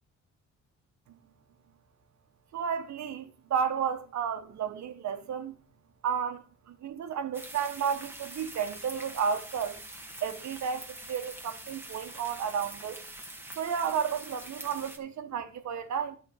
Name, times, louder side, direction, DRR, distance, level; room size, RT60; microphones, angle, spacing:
voice 1, 2.5-5.5 6.0-9.8 10.2-13.0 13.6-16.1, right 7 dB, 65° right, 1.4 m, -32 dB
sound 1, 7.3-15.0, right 1 dB, 5° right, 1.9 m, -45 dB
10.5 x 4.4 x 6.4 m
cardioid pair, 90°, 30 cm